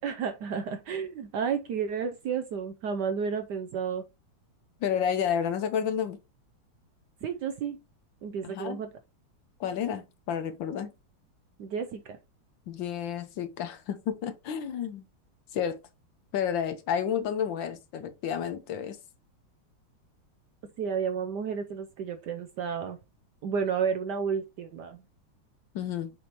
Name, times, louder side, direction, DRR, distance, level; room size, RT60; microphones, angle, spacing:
voice 1, 0.0-4.0 7.2-7.8 8.2-8.9 11.6-12.2 20.8-23.0 23.4-25.0, right 6 dB, 70° right, 1.0 m, -31 dB
voice 2, 4.8-6.2 8.4-8.8 9.6-10.9 12.7-15.1 15.5-15.8 16.3-19.0 25.7-26.1, left 8 dB, 70° left, 1.3 m, -30 dB
7.0 x 5.0 x 3.0 m
omnidirectional pair, 2.3 m